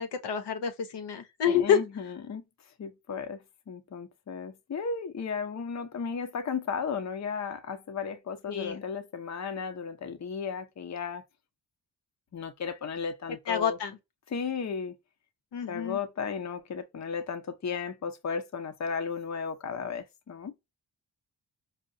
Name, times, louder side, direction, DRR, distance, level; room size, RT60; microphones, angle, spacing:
voice 1, 0.0-1.8 8.5-8.8 13.5-14.0 15.5-16.0, left 8 dB, 75° left, 0.8 m, -28 dB
voice 2, 1.5-2.4 2.8-11.2 12.3-13.8 14.3-14.9 15.7-20.5, left 6 dB, 40° left, 0.7 m, -35 dB
4.5 x 2.1 x 2.6 m
cardioid pair, 60°, 42 cm